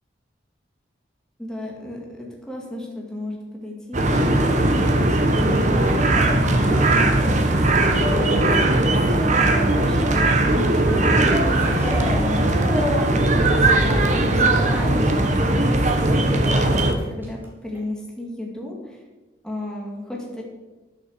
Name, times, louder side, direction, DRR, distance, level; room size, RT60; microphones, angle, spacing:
voice 1, 1.4-19.0 19.4-20.4, left 1 dB, 5° left, -2 dB, 2.0 m, -34 dB
sound 1, 3.9-16.9, right 2 dB, 40° right, 1.3 m, -19 dB
sound 2, 4.3-10.6 10.8-17.4 17.7-17.8, left 1 dB, 10° right, 2.4 m, -32 dB
10.5 x 7.3 x 6.9 m, 1.2 s
head